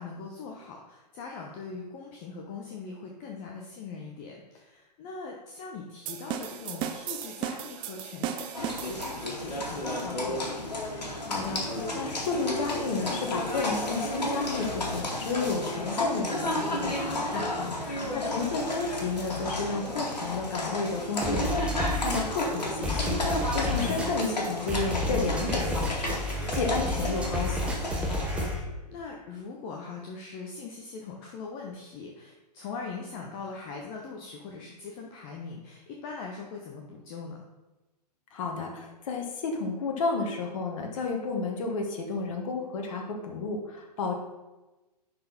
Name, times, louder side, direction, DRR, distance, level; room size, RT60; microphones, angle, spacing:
voice 1, 0.0-10.6 18.0-18.5 23.8-24.2 28.4-37.4, left 4 dB, 30° left, 0 dB, 0.9 m, -41 dB
sound 1, 6.1-9.5, right 10 dB, 20° right, 0.6 m, -36 dB
Livestock farm animals working animals, 8.5-28.5, left 1 dB, 75° left, 2.1 m, -32 dB
voice 2, 11.2-27.7 38.3-44.1, left 4 dB, 50° left, 2 dB, 1.4 m, -32 dB
sound 2, 21.2-28.6, left 1 dB, 5° right, 1.2 m, -31 dB
10.5 x 4.5 x 4.1 m, 1.1 s
figure-of-eight pair, 115°, 21 cm